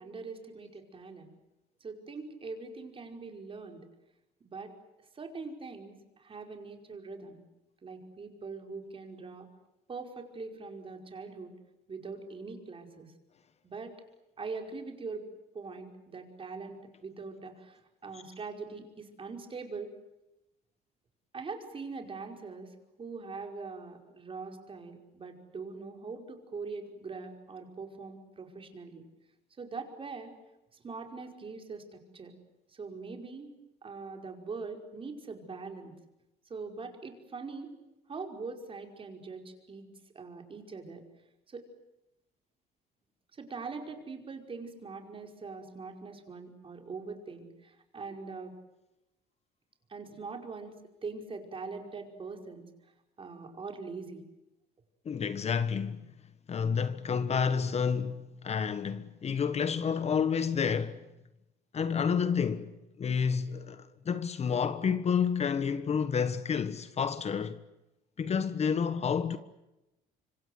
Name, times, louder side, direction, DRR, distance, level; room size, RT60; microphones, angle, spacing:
voice 1, 0.0-1.3 1.8-3.8 4.4-4.7 5.0-7.4 7.8-9.5 9.9-11.5 11.9-13.1 13.6-13.9 14.4-15.2 15.5-19.9 21.3-29.0 29.6-30.3 30.8-32.3 32.7-33.5 33.8-35.9 36.5-37.7 38.1-39.9 40.2-41.0 41.5-41.7 43.3-48.5 49.9-52.7 53.2-54.2, right 4 dB, 30° right, 5.3 m, -42 dB
voice 2, 55.0-56.0 56.5-61.0 61.7-67.6 68.2-69.4, left 6 dB, 40° left, 1.4 m, -30 dB
26.0 x 25.5 x 8.0 m
cardioid pair, 110°, 17 cm